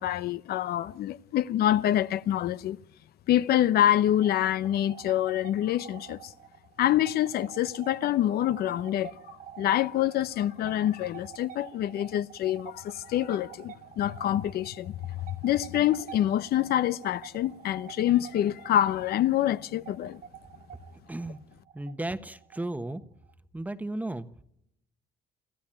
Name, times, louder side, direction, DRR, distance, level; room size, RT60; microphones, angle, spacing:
voice 1, 0.0-2.8 3.3-6.3 6.8-9.1 9.6-15.0 15.4-20.2, left 12 dB, 65° left, 0.9 m, -26 dB
sound 1, 3.9-23.3, right 10 dB, 50° right, 1.1 m, -48 dB
voice 2, 21.1-21.4 21.7-23.0 23.5-24.3, right 2 dB, 10° right, 1.2 m, -34 dB
27.0 x 14.5 x 8.9 m
cardioid pair, 110°, 17 cm